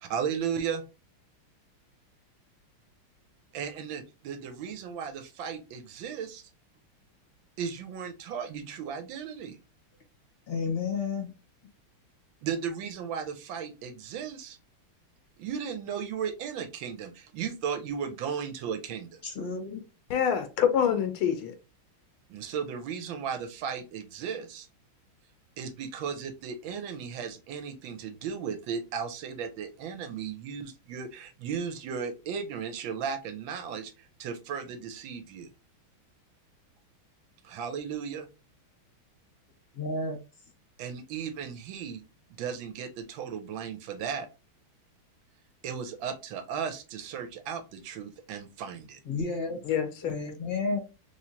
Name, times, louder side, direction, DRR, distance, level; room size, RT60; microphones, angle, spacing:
voice 1, 0.0-0.8 3.5-6.4 7.6-9.6 12.4-14.6 15.4-19.2 22.3-24.7 25.6-35.5 37.4-38.3 40.8-42.0 42.4-44.3 45.6-49.0, right 7 dB, 75° right, 1.4 m, -35 dB
voice 2, 10.5-11.3 19.2-19.8 39.7-40.2 49.0-49.6 50.0-50.8, left 4 dB, 45° left, 0.8 m, -31 dB
voice 3, 20.1-21.5 49.6-50.3, left 8 dB, 90° left, 1.5 m, -26 dB
3.5 x 3.2 x 2.7 m
omnidirectional pair, 2.3 m